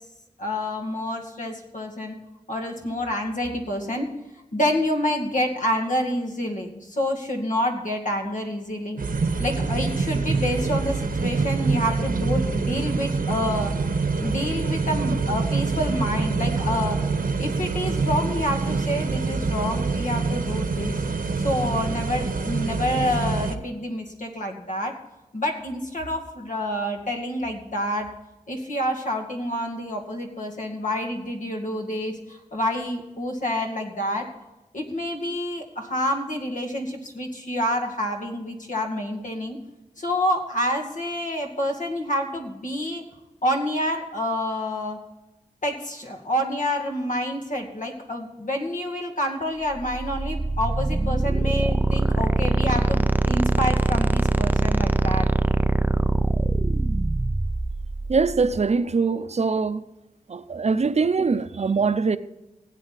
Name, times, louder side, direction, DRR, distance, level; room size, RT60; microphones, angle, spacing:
voice 1, 0.4-2.1 2.5-4.1 4.5-9.0 9.4-13.7 14.2-17.0 17.4-21.0 21.4-24.9 25.3-28.1 28.5-34.3 34.7-39.6 40.0-43.0 43.4-45.0 45.6-55.3, left 1 dB, 65° left, 2.3 m, -28 dB
sound 1, 9.0-23.5, right 4 dB, 80° right, 1.1 m, -25 dB
sound 2, 49.7-58.6, right 2 dB, 10° right, 0.4 m, -23 dB
voice 2, 58.1-59.8 60.3-62.2, right 4 dB, 50° right, 0.7 m, -22 dB
16.5 x 9.2 x 4.1 m
wide cardioid pair, 90°, 14 cm